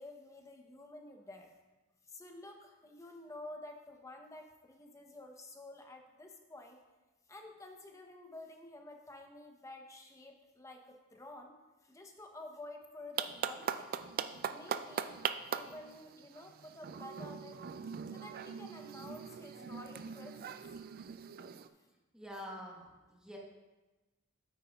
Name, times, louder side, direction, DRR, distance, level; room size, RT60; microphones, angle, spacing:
voice 1, 0.0-1.6 2.0-6.8 7.3-11.5 11.8-13.9 14.5-15.2 15.5-17.7 18.1-20.8, left 2 dB, 15° left, 3 dB, 0.7 m, -51 dB
sound 1, 13.2-21.7, right 7 dB, 45° right, 0.3 m, -41 dB
voice 2, 22.1-23.4, equal, 5° right, -3 dB, 1.2 m, -47 dB
8.9 x 8.7 x 2.3 m, 1.2 s
head